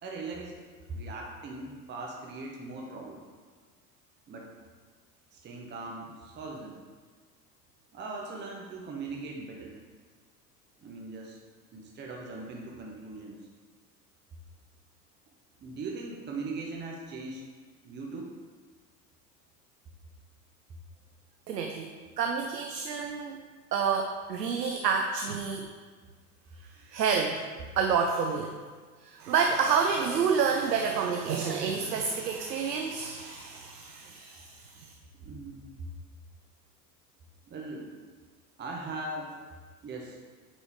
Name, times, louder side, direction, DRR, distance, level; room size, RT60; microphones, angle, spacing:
voice 1, 0.0-3.2 4.3-4.5 5.3-6.8 7.9-9.8 10.8-11.4 11.7-13.4 15.6-17.4 17.8-18.3 35.2-35.6 37.5-37.9 38.6-39.4 39.8-40.2, right 3 dB, 20° right, 0 dB, 1.0 m, -40 dB
voice 2, 21.5-21.9 22.2-23.4 23.7-25.7 26.8-27.4 27.8-28.5 29.0-34.9, right 6 dB, 80° right, 3 dB, 0.7 m, -29 dB
8.0 x 5.1 x 3.6 m, 1.5 s
figure-of-eight pair, 80°, 49 cm